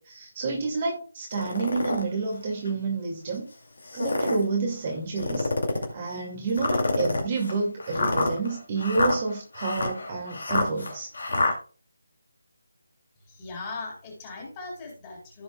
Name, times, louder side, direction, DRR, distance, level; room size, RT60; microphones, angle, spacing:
voice 1, 0.0-3.5 3.9-5.5 5.9-11.1, right 4 dB, 30° right, 0 dB, 2.1 m, -29 dB
sound 1, 1.3-2.0 2.7-2.8 3.8-4.5 5.2-5.9 6.6-11.5, left 2 dB, 60° left, 2.3 m, -27 dB
voice 2, 13.3-15.4, left 3 dB, 20° left, 0 dB, 3.1 m, -39 dB
15.0 x 5.2 x 2.2 m, 0.38 s
figure-of-eight pair, 155°, 0 cm